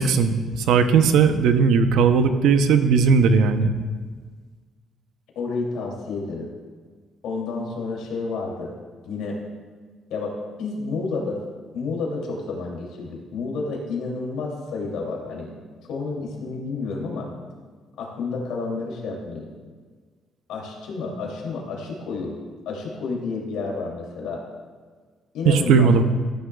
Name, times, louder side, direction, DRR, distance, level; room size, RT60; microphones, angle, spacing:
voice 1, 0.0-3.7 25.5-26.0, right 5 dB, 80° right, 9 dB, 0.7 m, -17 dB
voice 2, 5.3-6.5 7.2-8.7 9.1-9.4 10.1-11.4 11.7-15.5 15.9-17.3 18.0-19.5 20.5-22.3 22.7-24.4 25.3-26.0, left 4 dB, 90° left, -1 dB, 2.7 m, -30 dB
14.5 x 10.0 x 2.3 m, 1.5 s
cardioid pair, 145°, 0 cm